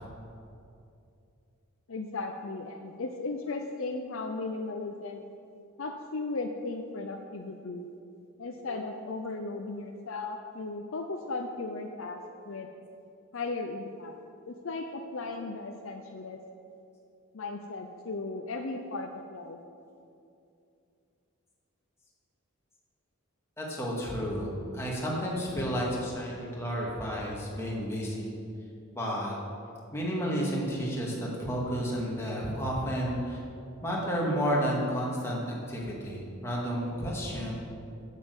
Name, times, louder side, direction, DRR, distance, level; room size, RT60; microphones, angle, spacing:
voice 1, 1.9-5.2 5.8-7.9 8.4-12.7 13.3-14.1 14.5-16.4 17.3-19.6, left 3 dB, 65° left, 3 dB, 0.6 m, -36 dB
voice 2, 23.6-28.3 28.9-29.3 29.9-33.4 33.8-37.5, equal, 10° left, -4 dB, 2.1 m, -31 dB
9.0 x 7.5 x 8.0 m, 2.6 s
head